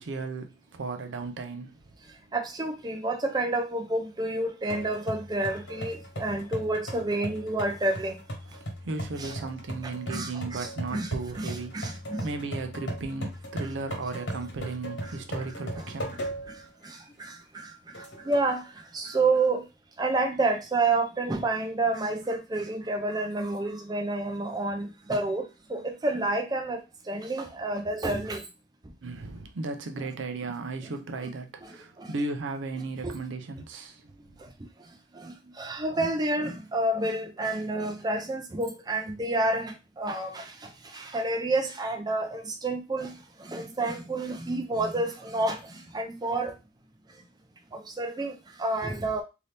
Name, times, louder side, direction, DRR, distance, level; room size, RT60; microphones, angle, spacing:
voice 1, 0.0-1.8 8.8-16.4 29.0-34.4, right 3 dB, 75° right, 0.5 m, -35 dB
voice 2, 2.3-8.2 9.2-9.3 9.8-12.3 15.0-15.5 16.5-19.6 20.0-26.8 27.1-28.5 30.8-30.9 31.2-31.3 31.6-32.1 33.0-33.1 34.4-34.5 35.1-46.5 47.7-49.2, right 2 dB, 20° right, 0.5 m, -30 dB
sound 1, 4.7-16.6 17.1-17.2 17.9-18.5, equal, 75° left, 1.3 m, -38 dB
2.7 x 2.7 x 3.3 m
head